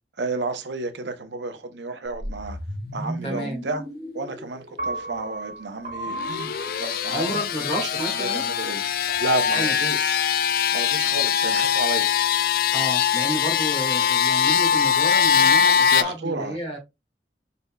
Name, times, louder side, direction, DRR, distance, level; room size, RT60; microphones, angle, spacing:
voice 1, 0.2-2.6 2.9-3.8 4.1-6.5 6.8-7.4 7.8-7.9 8.2-8.9 9.2-10.2 10.7-12.1 15.9-16.6, right 3 dB, 80° right, 0.8 m, -31 dB
sound 1, 2.1-6.4, equal, 25° right, 1.5 m, -36 dB
voice 2, 3.2-3.6 7.1-8.4 9.5-9.7 12.7-16.8, equal, 35° left, 1.8 m, -30 dB
Piano, 4.8-11.0, right 1 dB, 45° right, 1.8 m, -37 dB
sound 2, 6.1-16.0, left 8 dB, 50° left, 0.3 m, -22 dB
5.2 x 4.2 x 2.3 m
head